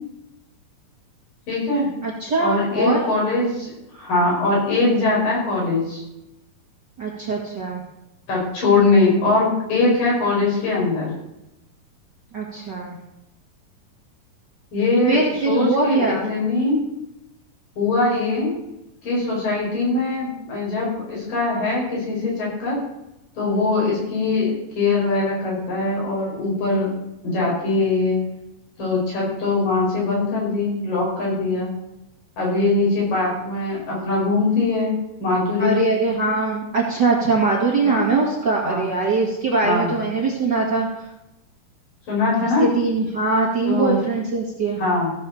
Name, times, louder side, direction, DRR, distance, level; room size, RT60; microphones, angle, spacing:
voice 1, 1.5-1.9 2.4-6.0 8.3-11.1 14.7-15.2 15.5-16.8 17.8-18.5 19.0-22.8 23.4-24.5 24.8-26.9 27.2-28.2 28.8-31.7 32.4-34.9 35.2-35.8 37.8-38.1 38.6-38.9 39.6-40.0 42.1-42.7 43.7-44.0 44.8-45.1, left 3 dB, 70° left, -5 dB, 6.9 m, -21 dB
voice 2, 2.0-3.0 7.0-7.8 12.3-13.0 15.1-16.3 35.6-40.9 42.6-44.8, right 3 dB, 35° right, -3 dB, 2.0 m, -22 dB
15.0 x 5.7 x 7.0 m, 0.89 s
omnidirectional pair, 4.0 m